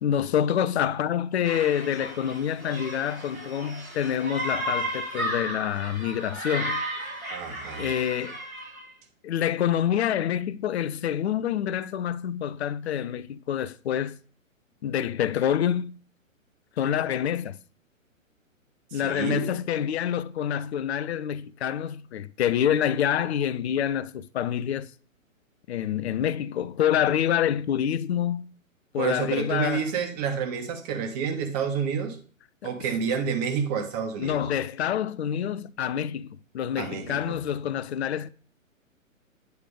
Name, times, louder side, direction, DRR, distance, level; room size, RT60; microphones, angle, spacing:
voice 1, 0.0-6.8 7.8-8.4 9.2-14.2 14.8-16.0 16.8-17.6 18.9-24.9 25.7-28.5 28.9-29.9 32.6-32.7 34.2-38.3, left 9 dB, 55° left, 0.5 m, -27 dB
sound 1, 1.4-8.9, right 1 dB, 85° right, 2.7 m, -34 dB
voice 2, 7.3-7.9 18.9-19.5 29.0-32.2 32.6-34.4 36.8-37.4, right 6 dB, 30° right, 1.3 m, -29 dB
9.3 x 3.3 x 5.1 m
figure-of-eight pair, 125°, 41 cm